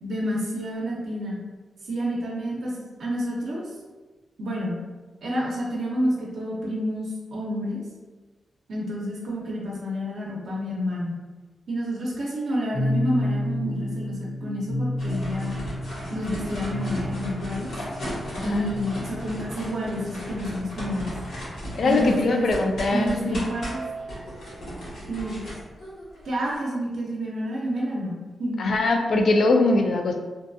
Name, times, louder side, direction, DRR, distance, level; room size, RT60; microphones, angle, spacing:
voice 1, 0.0-1.4 1.8-3.7 4.4-4.8 5.2-7.8 8.7-11.2 11.7-15.6 16.1-17.7 18.4-21.1 21.8-22.5 22.9-23.8 25.1-25.4 26.2-28.1 28.4-28.7, equal, 75° right, -4 dB, 0.5 m, -29 dB
sound 1, 12.7-21.9 22.7-24.6, left 1 dB, 15° left, 0.6 m, -33 dB
sound 2, 15.0-26.6, equal, 80° left, 1.2 m, -36 dB
voice 2, 18.4-18.7 21.8-23.5 28.6-30.2, left 2 dB, 60° left, 4 dB, 0.3 m, -22 dB
2.5 x 2.2 x 2.6 m, 1.3 s
wide cardioid pair, 110°, 0 cm